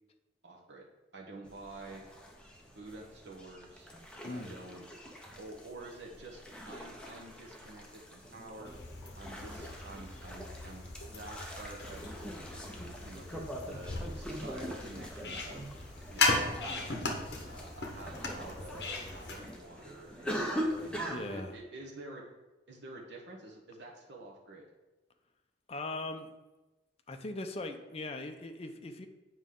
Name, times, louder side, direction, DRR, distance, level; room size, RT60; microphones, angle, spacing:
voice 1, 0.4-0.9 1.1-2.0 2.7-3.9 4.3-4.8 5.4-8.7 9.2-12.1 13.0-15.6 16.1-17.0 17.5-22.3 22.7-24.7, right 2 dB, 70° right, -1 dB, 1.2 m, -49 dB
sound 1, 1.5-21.2, equal, 5° left, 0.8 m, -43 dB
voice 2, 4.2-4.6 21.1-21.6 25.7-26.3 27.1-29.1, left 2 dB, 35° left, 6 dB, 0.5 m, -40 dB
sound 2, 8.6-19.4, left 3 dB, 60° left, 0.9 m, -37 dB
sound 3, 15.7-21.6, equal, 35° right, 1.5 m, -57 dB
7.8 x 5.0 x 3.7 m, 1.1 s
head